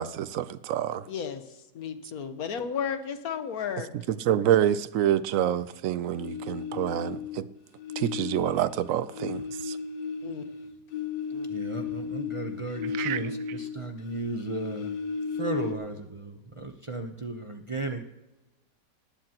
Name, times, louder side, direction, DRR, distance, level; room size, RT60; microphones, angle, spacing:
voice 1, 0.0-1.0 4.2-7.4 8.0-9.8 13.0-13.2, right 11 dB, 65° right, 0.8 m, -27 dB
voice 2, 1.1-1.4 1.7-3.9 10.2-10.4 11.3-11.5, left 7 dB, 60° left, 1.5 m, -33 dB
sound 1, 6.1-7.4 7.8-13.9 14.1-15.7, left 6 dB, 90° left, 1.6 m, -35 dB
voice 3, 11.5-14.9 15.3-18.1, right 2 dB, 30° right, 0.5 m, -34 dB
19.0 x 15.5 x 3.0 m
omnidirectional pair, 1.8 m